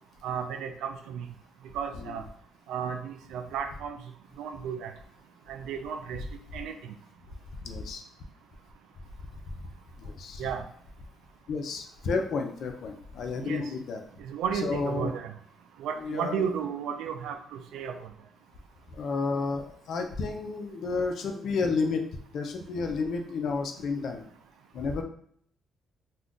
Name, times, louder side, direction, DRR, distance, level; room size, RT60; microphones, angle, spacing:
voice 1, 0.2-1.2 1.7-2.2 2.7-4.0 4.4-4.9 5.5-6.2 6.5-6.7 10.4-10.6 13.4-13.6 14.3-15.3 15.8-17.9, right 7 dB, 85° right, 7 dB, 0.3 m, -33 dB
voice 2, 7.6-8.0 9.5-9.6 10.0-10.5 11.5-14.0 14.6-15.1 16.0-16.5 18.9-22.0 22.3-24.2 24.7-25.0, left 4 dB, 65° left, 5 dB, 0.4 m, -31 dB
2.4 x 2.2 x 3.6 m, 0.64 s
cardioid pair, 90°, 0 cm